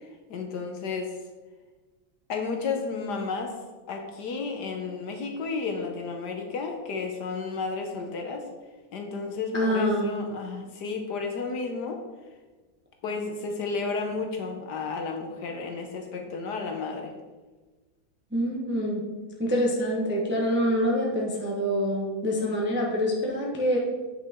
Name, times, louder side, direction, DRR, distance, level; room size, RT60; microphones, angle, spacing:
voice 1, 0.3-1.1 2.3-3.6 3.9-8.4 8.9-12.0 13.0-17.1, left 4 dB, 65° left, 3 dB, 1.3 m, -32 dB
voice 2, 9.5-10.1 18.3-19.0 19.4-23.8, equal, 10° right, -2 dB, 0.6 m, -26 dB
8.7 x 6.0 x 3.6 m, 1.3 s
omnidirectional pair, 2.1 m